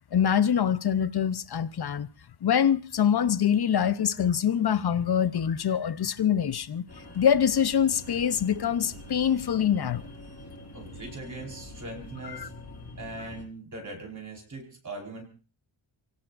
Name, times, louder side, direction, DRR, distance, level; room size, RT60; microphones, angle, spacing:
voice 1, 0.1-2.1 2.4-6.8 7.1-10.0 12.3-12.5, left 8 dB, 50° left, 0.8 m, -24 dB
sound 1, 6.9-13.4, left 1 dB, 30° left, 4.5 m, -45 dB
voice 2, 10.7-12.5 13.0-15.2, right 2 dB, 35° right, 4.9 m, -40 dB
29.5 x 17.5 x 2.6 m
wide cardioid pair, 150°, 49 cm